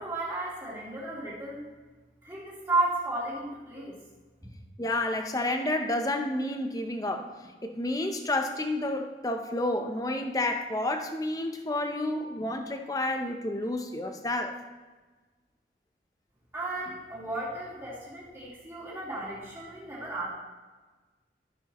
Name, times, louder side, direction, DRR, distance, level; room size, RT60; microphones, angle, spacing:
voice 1, 0.0-1.7 2.2-4.0 16.5-20.3, right 2 dB, 15° right, -8 dB, 2.9 m, -33 dB
voice 2, 4.8-7.3 7.6-14.6, left 1 dB, 20° left, 5 dB, 0.7 m, -30 dB
13.0 x 7.2 x 3.1 m, 1.3 s
head